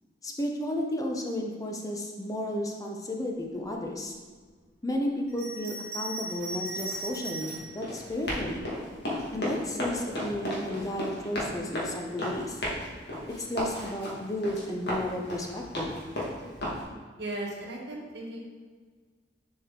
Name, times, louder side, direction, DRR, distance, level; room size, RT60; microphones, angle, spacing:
voice 1, 0.2-4.1 4.8-8.7 9.3-12.6 13.4-16.0, left 1 dB, 20° left, 1 dB, 0.6 m, -33 dB
Bell, 5.3-7.7 8.5-9.4, right 1 dB, 20° right, 1.9 m, -38 dB
Run, 6.3-16.8, left 1 dB, 65° left, 1.6 m, -35 dB
voice 2, 17.2-18.4, right 1 dB, 65° right, -2 dB, 1.3 m, -36 dB
6.8 x 4.4 x 3.7 m, 1.5 s
head